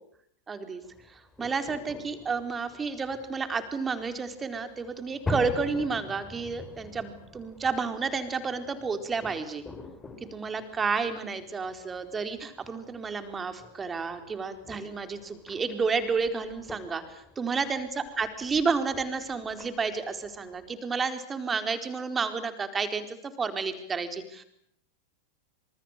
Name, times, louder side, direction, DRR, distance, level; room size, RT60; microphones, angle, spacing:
voice 1, 0.5-0.8 1.1-9.6 10.3-17.9 18.2-24.4, right 5 dB, 15° right, 9 dB, 4.3 m, -31 dB
sound 1, 0.8-20.7, left 2 dB, 10° left, 5.8 m, -45 dB
29.5 x 27.5 x 6.7 m, 0.70 s
figure-of-eight pair, 90°, 0 cm